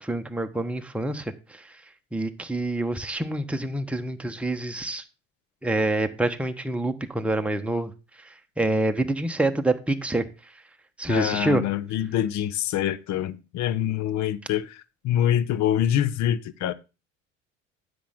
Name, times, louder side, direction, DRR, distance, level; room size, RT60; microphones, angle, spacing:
voice 1, 0.0-1.7 2.1-5.0 5.6-7.9 8.6-10.2 11.0-11.6, right 2 dB, 5° right, 1.1 m, -26 dB
voice 2, 11.1-16.7, left 11 dB, 50° left, 0.8 m, -25 dB
10.0 x 7.9 x 3.7 m
hypercardioid pair, 75°, 36 cm